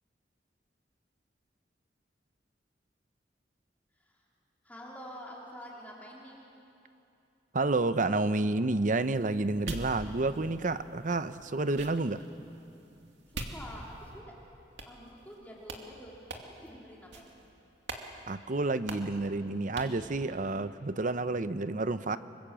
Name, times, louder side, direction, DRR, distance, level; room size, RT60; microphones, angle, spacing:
voice 1, 4.6-6.5 13.3-14.4 14.9-16.1 16.4-17.3, equal, 10° left, -4 dB, 3.5 m, -47 dB
voice 2, 7.5-12.2 18.3-22.2, right 2 dB, 45° right, 12 dB, 0.8 m, -30 dB
sound 1, 8.9-14.2 14.8-15.4 15.6-15.8 16.3-16.7 17.1-17.5 17.9-18.1 18.3-18.4 18.9-19.2 19.8-20.0, right 2 dB, 80° right, 2.5 m, -44 dB
25.5 x 24.5 x 7.6 m, 2.8 s
head